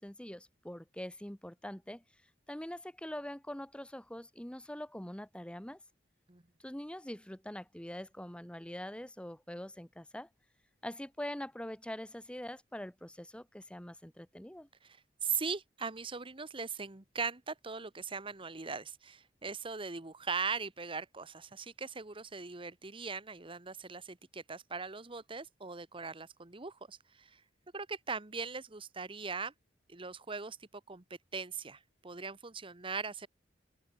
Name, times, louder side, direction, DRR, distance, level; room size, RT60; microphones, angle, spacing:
voice 1, 0.0-2.0 2.5-5.8 6.6-10.3 10.8-14.7, left 1 dB, 5° left, 1.0 m, -44 dB
voice 2, 14.8-27.4 27.7-29.5 29.9-31.0 31.3-33.3, right 5 dB, 30° right, 1.2 m, -40 dB
open air
head